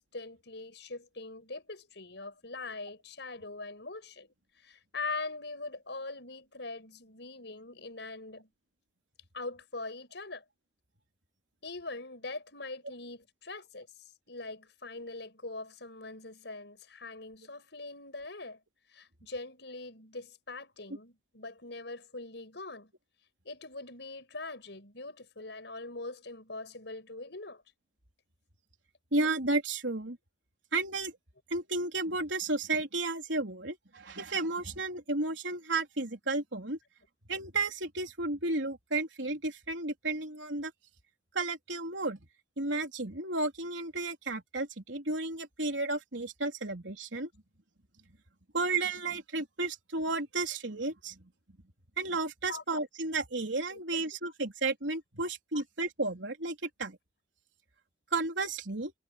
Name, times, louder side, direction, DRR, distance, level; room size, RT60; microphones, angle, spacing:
voice 1, 0.0-4.3 4.6-8.5 9.3-10.4 11.6-18.6 18.9-22.9 23.4-27.6 52.5-52.6 53.7-53.8 55.5-55.6, left 3 dB, 65° left, 5.8 m, -42 dB
voice 2, 29.1-30.2 30.7-31.1 31.5-36.8 37.3-40.7 41.3-42.2 42.6-47.3 48.5-51.2 52.0-57.0 58.1-58.9, right 3 dB, 80° right, 3.8 m, -33 dB
head